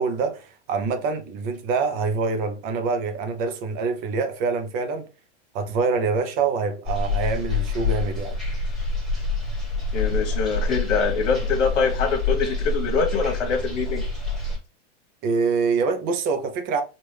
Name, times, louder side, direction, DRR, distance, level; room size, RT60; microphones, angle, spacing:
voice 1, 0.0-5.1 5.5-8.4 15.2-16.8, right 4 dB, 25° right, 0.5 m, -25 dB
sound 1, 6.8-14.6, left 3 dB, ahead, 1.5 m, -26 dB
voice 2, 9.9-14.0, left 5 dB, 80° left, 1.2 m, -24 dB
4.6 x 2.5 x 3.2 m
hypercardioid pair, 145°, 36 cm